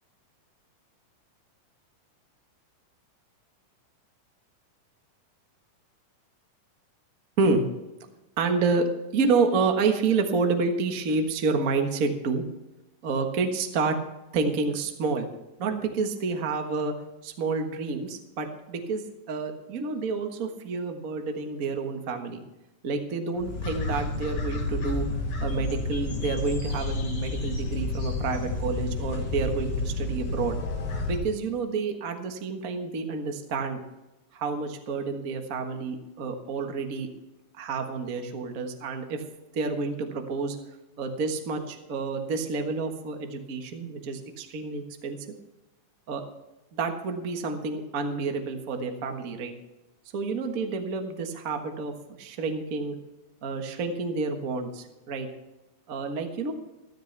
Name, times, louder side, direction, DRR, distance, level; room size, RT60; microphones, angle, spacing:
voice 1, 8.4-8.9 9.1-12.4 13.0-13.9 14.3-15.3 15.6-16.9 17.2-19.0 19.3-22.4 22.8-25.1 25.4-30.6 31.1-33.8 34.3-37.1 37.6-39.2 39.5-40.6 41.0-45.3 46.1-46.2 46.7-49.5 50.1-53.0 53.4-55.3 55.9-56.5, right 4 dB, 70° right, 5 dB, 0.8 m, -29 dB
sound 1, 23.3-31.2, left 2 dB, 75° left, 3.7 m, -30 dB
14.0 x 13.5 x 3.4 m, 1.0 s
omnidirectional pair, 3.9 m